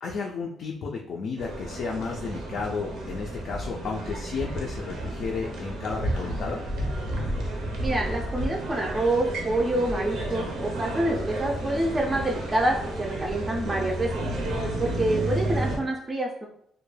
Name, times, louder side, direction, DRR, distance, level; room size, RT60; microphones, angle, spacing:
voice 1, 0.0-6.6, left 4 dB, 65° left, -1 dB, 0.3 m, -33 dB
sound 1, 1.4-15.8, right 1 dB, 85° right, 0.6 m, -32 dB
voice 2, 7.8-14.2 14.8-16.5, right 1 dB, 25° right, -1 dB, 0.4 m, -27 dB
2.2 x 2.1 x 3.1 m, 0.71 s
cardioid pair, 90°, 0 cm